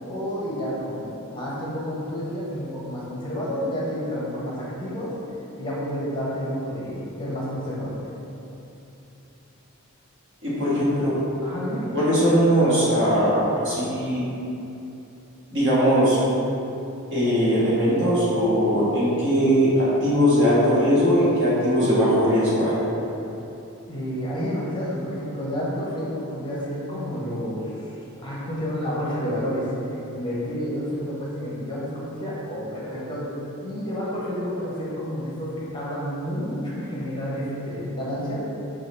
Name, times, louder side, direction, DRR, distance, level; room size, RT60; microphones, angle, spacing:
voice 1, 0.1-5.2 5.6-8.0 10.5-10.8 11.4-11.9 23.9-29.7 30.1-33.4 33.6-38.4, equal, 20° left, -7 dB, 0.7 m, -30 dB
voice 2, 10.4-11.1 11.9-14.2 15.5-16.2 17.1-22.7, equal, 55° right, -9 dB, 1.3 m, -20 dB
5.6 x 2.4 x 3.1 m, 2.9 s
head